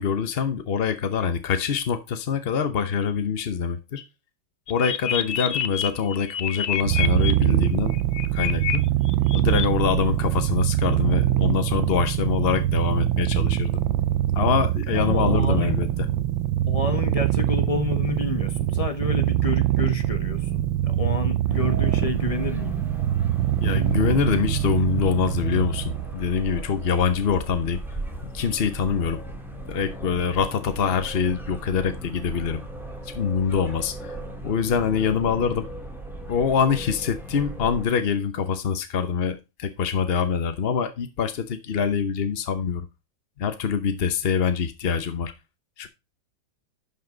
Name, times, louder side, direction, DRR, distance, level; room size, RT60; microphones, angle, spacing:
voice 1, 0.0-4.0 4.7-7.9 8.3-8.9 9.3-13.7 14.4-15.9 23.6-27.8 28.3-29.2 29.7-32.6 33.2-33.9 34.4-35.7 36.3-42.9 43.4-45.3 45.8-45.9, left 6 dB, 55° left, 0.7 m, -24 dB
sound 1, 4.7-7.3 7.9-8.8 9.1-9.6, left 10 dB, 75° left, 1.5 m, -28 dB
Purr, 6.8-26.1, right 13 dB, 85° right, 1.4 m, -23 dB
voice 2, 14.9-15.8 16.7-22.9, left 3 dB, 20° left, 1.2 m, -29 dB
sound 2, 21.5-37.8, right 2 dB, ahead, 2.0 m, -37 dB
11.5 x 5.7 x 3.8 m
omnidirectional pair, 2.1 m